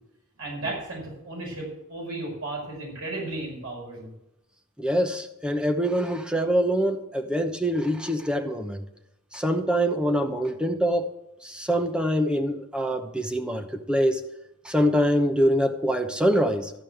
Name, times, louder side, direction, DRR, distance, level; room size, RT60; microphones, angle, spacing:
voice 1, 0.4-4.1, right 2 dB, 75° right, -3 dB, 5.6 m, -34 dB
voice 2, 4.8-8.8 9.3-11.1 11.4-14.2 14.6-16.7, equal, 5° right, 6 dB, 0.9 m, -24 dB
14.0 x 5.3 x 7.8 m, 0.86 s
head